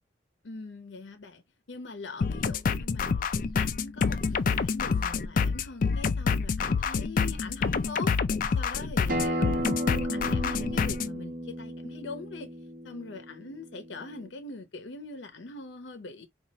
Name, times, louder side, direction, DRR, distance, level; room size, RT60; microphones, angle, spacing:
voice 1, 0.4-1.4 1.7-3.3 3.6-8.2 8.5-12.5 12.8-16.3, left 3 dB, 80° left, 0.7 m, -42 dB
sound 1, 2.2-11.1, left 5 dB, 45° left, 0.3 m, -27 dB
Acoustic guitar, 9.1-14.3, equal, 50° right, 1.0 m, -34 dB
4.2 x 2.4 x 2.8 m
head